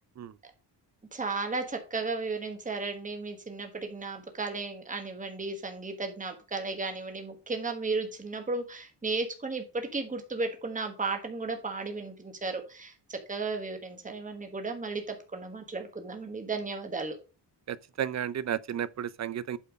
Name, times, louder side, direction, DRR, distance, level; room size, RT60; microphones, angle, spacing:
voice 1, 1.1-17.2, right 3 dB, 20° right, 1.4 m, -34 dB
voice 2, 17.7-19.6, right 9 dB, 40° right, 0.5 m, -33 dB
8.4 x 4.4 x 5.1 m
wide cardioid pair, 130°, 42 cm